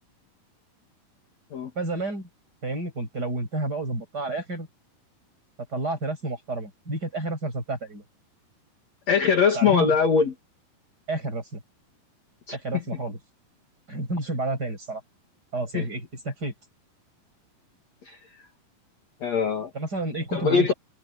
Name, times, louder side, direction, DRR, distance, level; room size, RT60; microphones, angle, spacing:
voice 1, 1.8-2.3 2.6-4.7 5.7-8.0 9.5-9.9 11.1-11.6 12.5-13.2 13.9-15.0 15.5-16.5 19.7-20.7, right 2 dB, 25° right, 7.1 m, -30 dB
voice 2, 9.1-10.3 12.5-12.8 15.7-15.9 18.1-18.2 19.2-19.7 20.3-20.7, left 6 dB, 50° left, 2.8 m, -22 dB
omnidirectional pair, 4.4 m